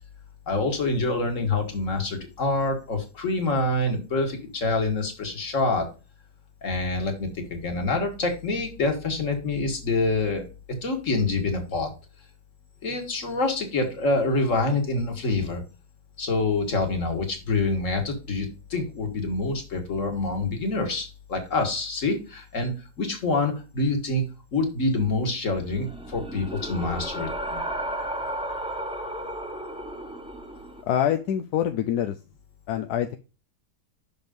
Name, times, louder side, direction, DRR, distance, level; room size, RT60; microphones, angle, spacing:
voice 1, 0.5-5.9 6.6-10.5 10.8-11.9 12.8-15.6 16.2-22.7 23.0-24.2 24.5-27.6, left 3 dB, 50° left, 4 dB, 2.1 m, -26 dB
sound 1, 25.7-30.8, right 1 dB, 5° right, 1.1 m, -33 dB
voice 2, 30.9-32.2 32.7-33.2, left 10 dB, 75° left, 7 dB, 1.1 m, -25 dB
6.0 x 5.3 x 5.2 m, 0.32 s
omnidirectional pair, 1.8 m